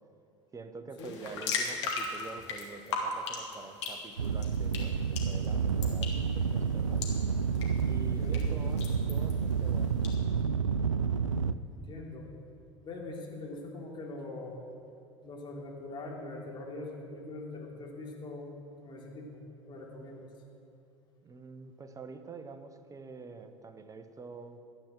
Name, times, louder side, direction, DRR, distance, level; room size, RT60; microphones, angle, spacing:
voice 1, 0.5-7.1 7.8-10.0 21.2-24.6, right 4 dB, 20° right, 8 dB, 1.1 m, -46 dB
sound 1, 1.0-10.1, left 4 dB, 65° left, 2.4 m, -39 dB
sound 2, 4.2-11.5, right 6 dB, 90° right, 0.4 m, -29 dB
voice 2, 8.2-8.5 11.7-12.3 12.8-14.6 15.2-18.5 18.8-20.3, left 2 dB, 30° left, -2 dB, 3.4 m, -42 dB
13.5 x 9.6 x 7.6 m, 2.5 s
figure-of-eight pair, 75°, 16 cm